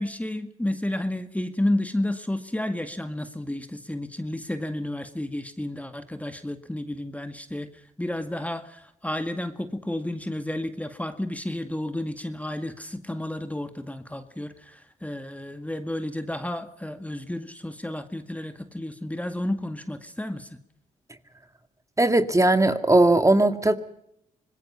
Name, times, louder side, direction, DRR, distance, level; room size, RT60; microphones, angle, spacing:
voice 1, 0.0-7.7 8.0-20.6, left 1 dB, 10° left, 8 dB, 1.9 m, -31 dB
voice 2, 22.0-23.7, right 2 dB, 15° right, 8 dB, 2.2 m, -19 dB
26.0 x 21.0 x 5.7 m, 0.77 s
hypercardioid pair, 45°, 18 cm